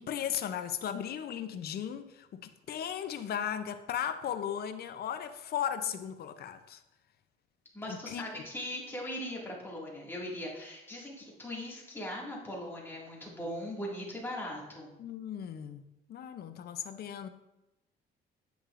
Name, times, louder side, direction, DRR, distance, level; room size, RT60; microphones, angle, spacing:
voice 1, 0.0-6.8 7.9-8.2 15.0-17.3, left 9 dB, 55° left, 0.5 m, -36 dB
voice 2, 7.7-14.9, left 1 dB, 10° left, 2.0 m, -40 dB
8.5 x 5.9 x 2.5 m
cardioid pair, 115°, 20 cm